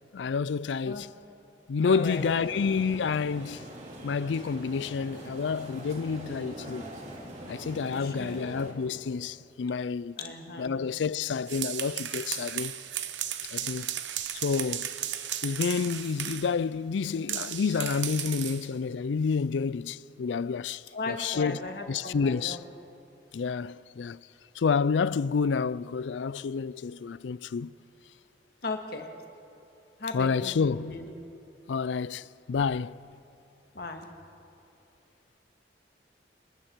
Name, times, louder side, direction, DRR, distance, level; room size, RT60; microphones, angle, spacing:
voice 1, 0.1-1.1 1.7-3.7 4.0-6.8 7.4-10.2 10.6-12.7 13.4-13.9 14.3-14.9 15.4-22.6 23.3-24.3 24.5-27.7 30.1-31.0 31.7-33.0, left 5 dB, 90° left, 0.4 m, -29 dB
voice 2, 1.8-2.2 7.9-8.4 10.2-10.7 20.9-22.6 28.6-29.1 30.0-31.1 33.7-34.1, left 3 dB, 60° left, 1.8 m, -37 dB
sound 1, 2.0-8.7, right 1 dB, 40° right, 2.9 m, -43 dB
sound 2, 11.3-16.5 17.3-18.7, right 11 dB, 90° right, 1.0 m, -35 dB
27.5 x 22.0 x 4.6 m
head